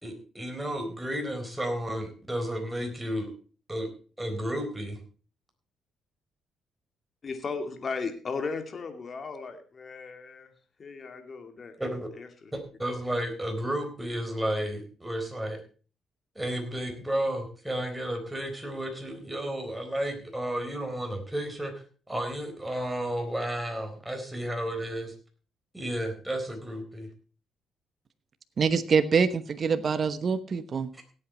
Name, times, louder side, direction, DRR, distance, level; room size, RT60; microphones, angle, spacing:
voice 1, 0.0-3.3 3.7-3.9 4.2-5.0 11.8-12.1 12.5-15.6 16.4-25.1 25.7-27.1 30.9-31.0, right 1 dB, 10° right, 5 dB, 4.0 m, -32 dB
voice 2, 7.2-10.5 10.8-11.7 12.2-12.3, left 4 dB, 40° left, 6 dB, 2.5 m, -36 dB
voice 3, 28.6-30.9, right 5 dB, 45° right, 11 dB, 1.0 m, -25 dB
17.0 x 8.6 x 4.3 m, 0.38 s
cardioid pair, 90°, 0 cm